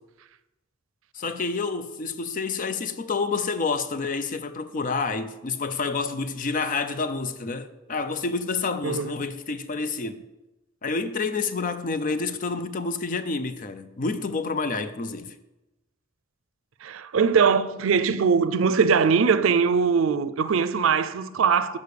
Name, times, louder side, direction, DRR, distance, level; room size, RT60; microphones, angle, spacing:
voice 1, 1.1-10.2 10.8-15.3, left 4 dB, 45° left, 0.5 m, -28 dB
voice 2, 16.8-21.8, right 6 dB, 85° right, 0.5 m, -21 dB
6.6 x 5.3 x 6.8 m
head